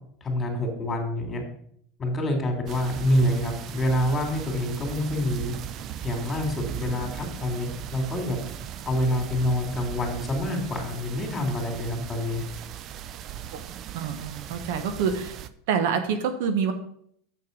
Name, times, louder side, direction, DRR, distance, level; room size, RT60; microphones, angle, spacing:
voice 1, 0.2-1.4 2.0-5.5 6.0-8.4 8.8-12.4, left 1 dB, 25° left, 2 dB, 2.8 m, -27 dB
sound 1, 2.7-15.5, right 10 dB, 45° right, 0.5 m, -38 dB
voice 2, 13.9-15.4 15.7-16.7, right 6 dB, 65° right, 8 dB, 1.0 m, -26 dB
6.8 x 6.7 x 5.3 m, 0.68 s
hypercardioid pair, 90°, 0 cm